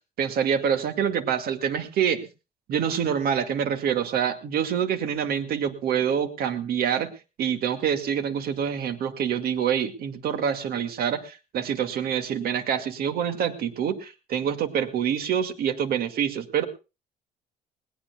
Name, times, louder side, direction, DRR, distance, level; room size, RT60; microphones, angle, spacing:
voice 1, 0.2-2.3 2.7-7.1 7.4-16.6, right 8 dB, 65° right, 8 dB, 2.1 m, -26 dB
20.0 x 19.0 x 2.3 m, 0.30 s
cardioid pair, 110°, 17 cm